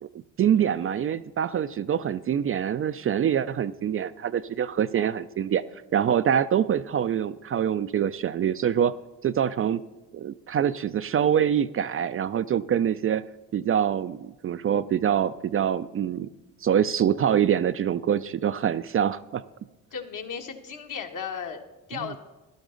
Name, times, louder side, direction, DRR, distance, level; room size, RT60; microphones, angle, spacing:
voice 1, 0.0-5.6 5.9-8.9 9.2-9.8 10.1-13.2 13.5-16.3 16.6-19.4 22.0-22.1, right 9 dB, 40° right, 13 dB, 0.4 m, -25 dB
voice 2, 19.9-21.6 21.9-22.2, left 7 dB, 55° left, 4 dB, 1.4 m, -35 dB
12.5 x 11.5 x 3.8 m, 1.1 s
supercardioid pair, 60°, 37 cm